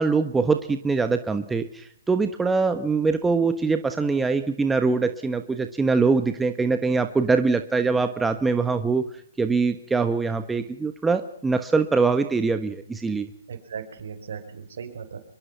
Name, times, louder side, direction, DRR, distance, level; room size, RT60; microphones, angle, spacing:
voice 1, 0.0-9.0 9.4-13.3, right 4 dB, 5° right, 8 dB, 1.3 m, -23 dB
voice 2, 13.5-15.2, right 7 dB, 65° right, 8 dB, 5.0 m, -37 dB
24.5 x 22.5 x 5.7 m, 0.68 s
hypercardioid pair, 145°, 0 cm